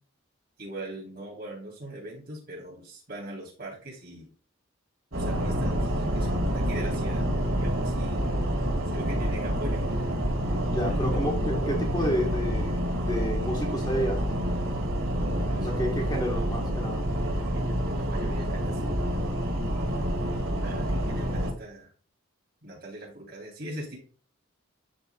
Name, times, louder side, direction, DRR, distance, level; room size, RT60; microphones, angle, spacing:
voice 1, 0.6-4.3 5.1-7.3 7.6-8.5 8.9-9.9 10.8-11.2 17.5-19.2 20.6-21.9 22.6-24.0, right 1 dB, 45° right, -3 dB, 3.9 m, -41 dB
sound 1, 5.1-21.5, equal, 85° right, 2.2 m, -28 dB
voice 2, 10.7-14.2 15.6-17.0, equal, 20° left, -1 dB, 1.5 m, -30 dB
12.5 x 4.5 x 2.4 m, 0.39 s
head